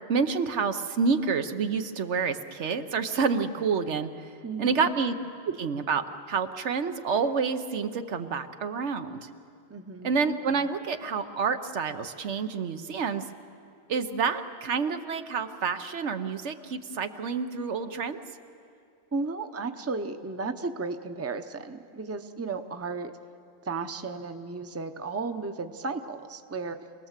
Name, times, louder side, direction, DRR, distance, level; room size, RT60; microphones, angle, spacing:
voice 1, 0.1-5.1 5.4-9.3 10.0-13.2 13.9-18.2, right 5 dB, 85° right, 8 dB, 1.3 m, -28 dB
voice 2, 4.4-4.9 9.7-10.1 19.1-23.1 23.6-27.1, right 4 dB, 15° right, 8 dB, 0.7 m, -34 dB
26.5 x 19.0 x 7.4 m, 2.4 s
omnidirectional pair, 1.2 m